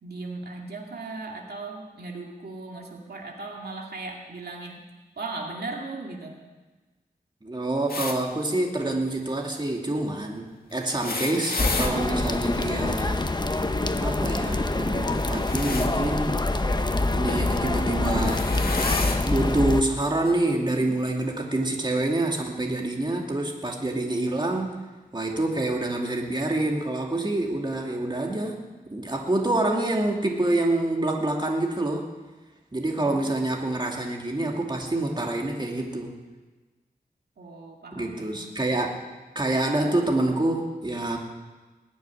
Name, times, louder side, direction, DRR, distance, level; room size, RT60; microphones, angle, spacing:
voice 1, 0.0-4.8 5.2-6.4 20.8-20.9 33.0-33.5 37.4-38.5, right 3 dB, 90° right, 0 dB, 2.3 m, -37 dB
voice 2, 7.4-13.2 14.0-16.4 17.1-18.4 19.2-24.8 25.1-28.6 28.9-32.1 32.7-36.2 37.9-39.0 39.3-41.2, right 2 dB, 30° right, 0 dB, 2.5 m, -27 dB
sound 1, 7.9-8.2 10.8-11.9 15.2-15.9 17.3-17.5 18.1-19.2 20.3-20.4 21.6-21.7, left 3 dB, 70° left, 1.7 m, -31 dB
sound 2, 11.6-19.8, left 2 dB, 25° left, 0.9 m, -25 dB
20.5 x 7.2 x 9.9 m, 1.2 s
wide cardioid pair, 75°, 16 cm